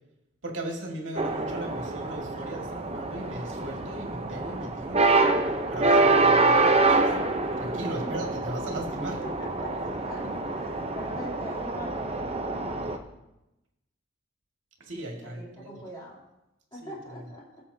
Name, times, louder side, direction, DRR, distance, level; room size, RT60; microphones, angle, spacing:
voice 1, 0.4-5.3 5.7-7.1 7.6-9.2 14.8-15.8 16.8-17.2, right 1 dB, 75° right, 0 dB, 2.1 m, -37 dB
sound 1, 1.2-13.0, right 3 dB, 30° right, 0.7 m, -26 dB
voice 2, 8.9-13.0 15.2-16.2 16.7-17.4, equal, 20° left, -6 dB, 3.0 m, -42 dB
17.5 x 7.5 x 2.8 m, 0.92 s
head